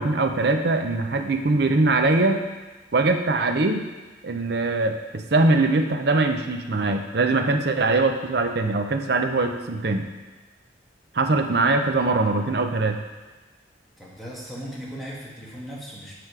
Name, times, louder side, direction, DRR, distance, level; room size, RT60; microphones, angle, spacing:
voice 1, 0.0-2.4 2.9-3.9 4.2-10.1 11.1-13.0, right 3 dB, 60° right, 5 dB, 0.6 m, -22 dB
voice 2, 14.0-16.1, equal, ahead, -6 dB, 1.4 m, -37 dB
7.7 x 5.1 x 4.7 m, 1.2 s
head